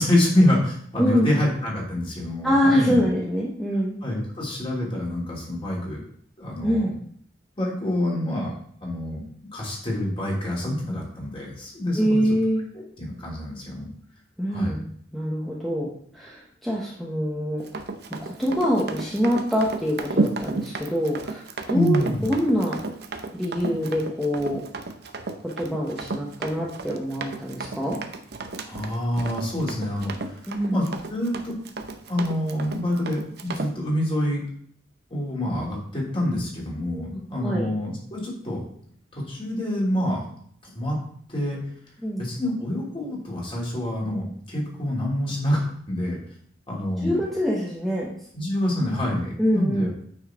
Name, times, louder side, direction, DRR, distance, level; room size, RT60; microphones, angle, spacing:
voice 1, 0.0-3.1 4.0-6.0 6.4-6.9 7.6-9.2 9.5-12.2 12.7-13.9 14.5-14.8 21.7-22.3 28.6-30.4 30.7-31.5 32.1-34.4 35.1-38.6 39.1-40.2 40.7-41.0 41.3-41.6 42.2-46.2 46.7-47.2 48.3-49.9, left 1 dB, 30° left, -3 dB, 2.9 m, -26 dB
voice 2, 1.0-1.4 2.4-4.0 6.6-7.0 11.9-12.6 14.4-17.6 18.2-21.4 21.7-22.8 23.3-24.6 25.4-28.0 30.5-30.8 37.4-37.7 42.0-42.3 47.0-48.1 49.4-49.9, equal, ahead, -5 dB, 1.1 m, -25 dB
Run, 17.6-33.7, right 3 dB, 60° right, 0.7 m, -33 dB
9.1 x 5.5 x 3.7 m, 0.62 s
head